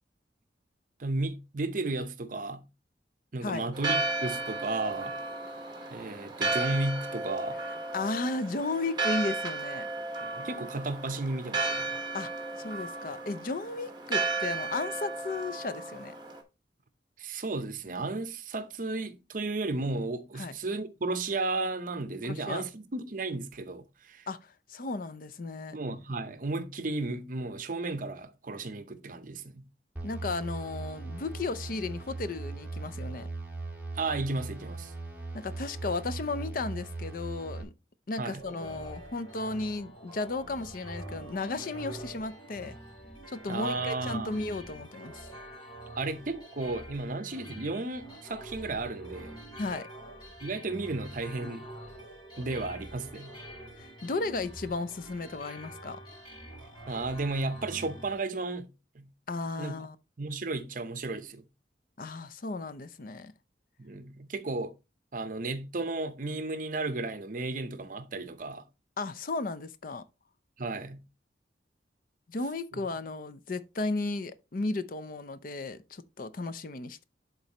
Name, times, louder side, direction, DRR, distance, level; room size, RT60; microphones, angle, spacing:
voice 1, 1.0-2.6 3.3-5.1 5.9-7.6 10.2-11.9 17.2-24.3 25.7-29.6 33.9-34.9 38.2-38.4 43.5-44.4 45.9-49.3 50.4-51.7 52.4-53.3 56.7-58.7 58.9-59.1 59.6-59.8 60.2-61.4 63.8-64.7 65.1-68.6 70.6-71.0, right 2 dB, 50° right, 0.7 m, -34 dB
Church bell, 3.7-16.4, right 3 dB, 25° right, 1.3 m, -34 dB
voice 2, 7.9-9.9 12.1-12.3 12.6-16.1 20.4-20.6 22.2-22.6 24.3-25.8 30.0-33.3 35.3-37.7 38.1-42.8 43.3-45.3 49.6-49.9 53.8-56.0 59.3-60.0 62.0-63.3 69.0-70.0 72.3-77.0, left 3 dB, 50° left, 0.5 m, -34 dB
sound 1, 30.0-37.6, right 3 dB, 10° right, 1.7 m, -39 dB
sound 2, 38.4-58.2, right 1 dB, 25° left, 3.2 m, -46 dB
11.5 x 3.9 x 2.9 m
head